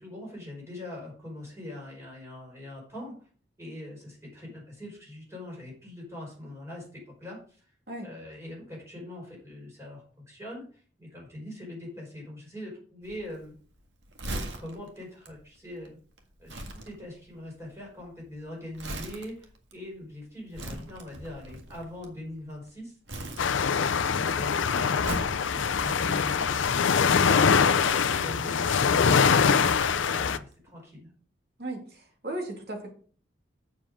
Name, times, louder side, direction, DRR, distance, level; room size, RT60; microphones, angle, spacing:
voice 1, 0.0-3.3 3.6-7.7 8.0-13.5 14.2-16.0 16.4-23.0 23.6-31.1, left 1 dB, 15° right, -3 dB, 5.1 m, -42 dB
Crumpling crinkling, 13.0-22.7 23.1-24.0 24.3-27.0 27.7-30.4 30.7-30.8, right 1 dB, 75° right, 1.7 m, -41 dB
sound 1, 23.4-30.4, left 6 dB, 90° left, 0.5 m, -23 dB
voice 2, 31.6-32.9, right 1 dB, 55° right, 2 dB, 2.6 m, -36 dB
7.5 x 7.3 x 5.0 m, 0.43 s
head